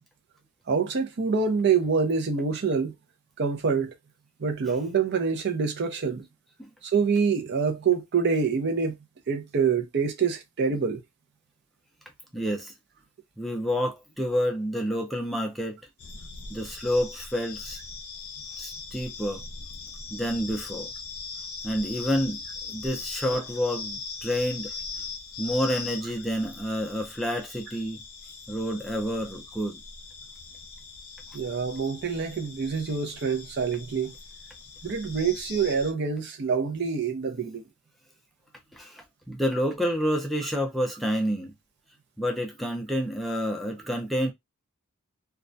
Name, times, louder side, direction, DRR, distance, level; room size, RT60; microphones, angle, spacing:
voice 1, 0.7-2.9 3.4-4.0 4.4-6.3 6.8-8.9 9.3-11.0 23.3-23.4 31.3-34.1 34.8-37.6, right 5 dB, 55° right, 0.5 m, -26 dB
voice 2, 12.3-12.7 13.4-15.8 16.5-17.8 18.6-19.4 20.1-20.9 21.6-24.7 25.4-28.0 28.5-29.8 38.7-41.5 42.2-44.3, equal, ahead, 0.4 m, -29 dB
sound 1, 16.0-35.9, left 4 dB, 85° left, 0.5 m, -40 dB
2.3 x 2.1 x 2.6 m
head